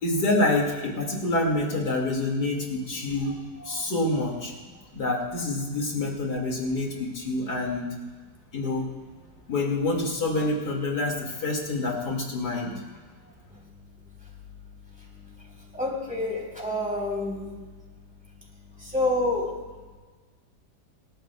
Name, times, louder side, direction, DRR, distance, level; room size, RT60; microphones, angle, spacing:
voice 1, 0.0-4.5 4.9-7.9 8.5-8.9 9.5-12.7, left 2 dB, 65° left, 0 dB, 2.7 m, -27 dB
voice 2, 15.0-17.6 18.8-19.5, left 2 dB, 5° right, -3 dB, 3.6 m, -29 dB
27.0 x 13.0 x 2.3 m, 1.4 s
omnidirectional pair, 1.8 m